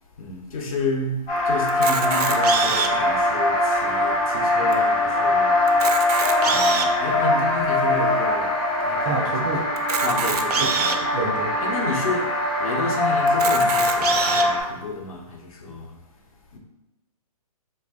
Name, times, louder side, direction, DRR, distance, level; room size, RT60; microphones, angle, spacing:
voice 1, 0.2-5.6 6.4-9.4 10.0-11.1 11.6-16.2 16.5-16.6, left 2 dB, 65° left, 1 dB, 0.9 m, -31 dB
sound 1, 1.3-14.6, left 1 dB, 20° left, 0.8 m, -22 dB
Camera, 1.7-3.1 3.7-3.8 4.0-4.2 4.7-4.8 5.6-7.0 7.6-7.7 9.8-11.0 11.7-11.8 12.1-12.2 13.3-14.5, right 6 dB, 85° right, 0.5 m, -25 dB
voice 2, 9.0-9.6 11.1-11.5, right 2 dB, 15° right, -2 dB, 0.3 m, -27 dB
3.3 x 2.5 x 3.6 m, 1.0 s
hypercardioid pair, 155°, 19 cm